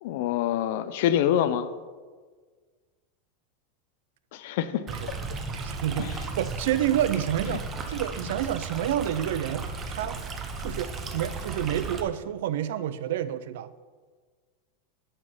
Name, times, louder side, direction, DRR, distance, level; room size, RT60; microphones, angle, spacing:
voice 1, 0.0-1.7 4.3-5.2 6.0-6.2 7.5-7.6, left 10 dB, 60° left, 13 dB, 0.5 m, -26 dB
Stream, 4.9-12.0, right 4 dB, 20° right, 0.7 m, -35 dB
voice 2, 5.5-10.2 10.6-13.7, right 11 dB, 70° right, 14 dB, 0.5 m, -29 dB
7.9 x 5.9 x 5.5 m, 1.5 s
supercardioid pair, 160°, 0 cm